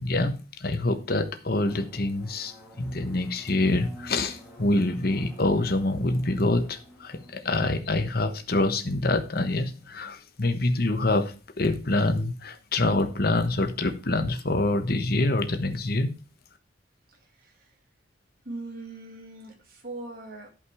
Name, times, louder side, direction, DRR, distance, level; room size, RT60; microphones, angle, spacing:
voice 1, 0.0-16.2, left 2 dB, 50° left, 1.2 m, -26 dB
Drum, 1.7-11.0, equal, ahead, 2.7 m, -50 dB
voice 2, 17.1-17.7 18.4-20.5, right 2 dB, 50° right, 2.5 m, -41 dB
11.5 x 5.3 x 4.8 m
head